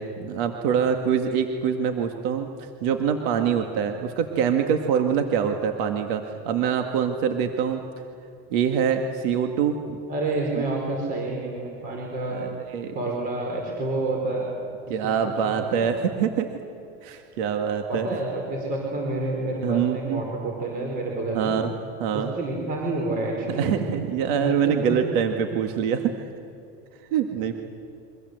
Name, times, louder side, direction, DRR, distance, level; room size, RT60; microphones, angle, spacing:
voice 1, 0.0-7.8 8.5-10.0 12.3-13.0 14.9-16.5 17.0-18.1 19.6-20.2 21.3-21.7 22.0-22.3 23.5-26.2 27.1-27.5, right 7 dB, 55° right, 5 dB, 1.9 m, -25 dB
voice 2, 10.1-12.4 12.9-14.5 14.9-16.0 17.9-21.6 22.1-23.8 24.4-25.0, right 2 dB, 25° right, -1 dB, 4.5 m, -29 dB
29.0 x 24.5 x 8.0 m, 2.8 s
supercardioid pair, 175°, 32 cm